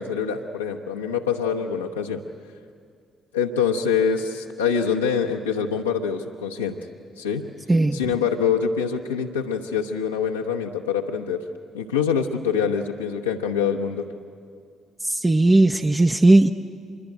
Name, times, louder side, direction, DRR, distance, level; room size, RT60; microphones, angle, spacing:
voice 1, 0.0-2.2 3.3-6.8 7.2-7.4 7.9-11.4 11.7-14.1, left 7 dB, 80° left, -1 dB, 1.0 m, -25 dB
voice 2, 7.7-8.0 15.0-16.5, right 2 dB, 20° right, 4 dB, 0.8 m, -17 dB
25.0 x 22.0 x 9.1 m, 2.2 s
figure-of-eight pair, 45°, 0 cm